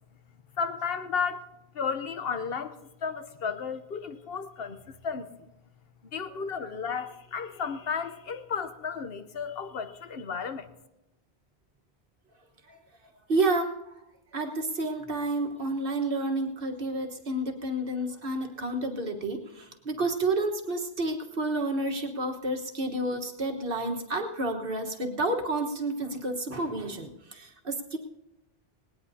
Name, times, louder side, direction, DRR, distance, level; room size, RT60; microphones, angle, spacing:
voice 1, 0.6-1.4 1.7-5.3 6.1-10.7, left 6 dB, 65° left, 9 dB, 1.0 m, -33 dB
voice 2, 13.3-13.7 14.3-28.0, right 2 dB, 60° right, 3 dB, 1.6 m, -30 dB
19.0 x 19.0 x 2.8 m, 0.94 s
omnidirectional pair, 1.1 m